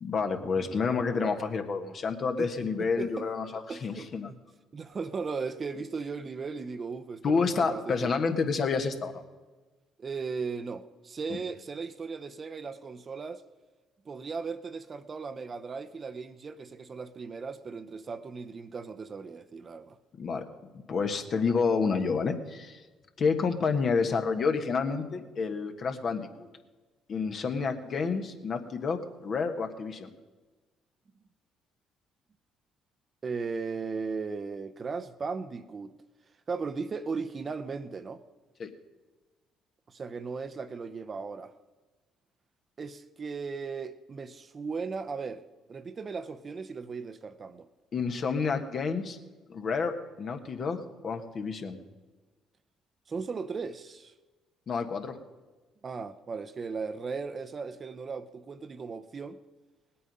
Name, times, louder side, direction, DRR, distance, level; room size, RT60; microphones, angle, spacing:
voice 1, 0.0-4.3 7.2-9.2 11.3-11.4 20.2-20.4 20.9-22.8 23.2-26.5 27.1-30.1 38.6-38.7 47.9-49.2 49.5-51.8 54.7-55.2, left 5 dB, 50° left, 1.4 m, -29 dB
voice 2, 0.5-1.3 2.4-2.5 2.8-3.3 3.7-4.4 4.7-8.1 10.0-13.4 14.1-20.0 33.2-35.9 36.5-38.2 39.9-41.5 42.8-45.4 45.7-47.7 53.1-54.1 55.8-59.4, right 4 dB, 40° right, 0.8 m, -37 dB
18.5 x 8.6 x 5.4 m
hypercardioid pair, 60°, 0 cm